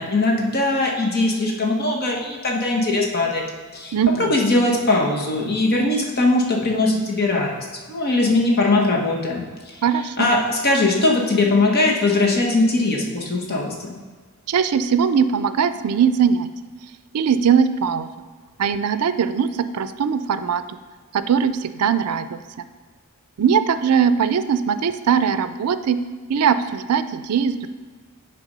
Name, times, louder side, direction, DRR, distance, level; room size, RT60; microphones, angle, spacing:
voice 1, 0.0-3.4 3.7-3.9 4.2-9.8 10.2-14.0, left 2 dB, 45° left, -1 dB, 1.3 m, -20 dB
voice 2, 3.9-4.3 9.8-10.3 14.5-16.5 17.1-18.1 18.6-20.6 21.1-22.4 23.4-26.0 26.3-27.7, right 7 dB, 85° right, 11 dB, 0.4 m, -20 dB
9.3 x 3.4 x 5.3 m, 1.5 s
head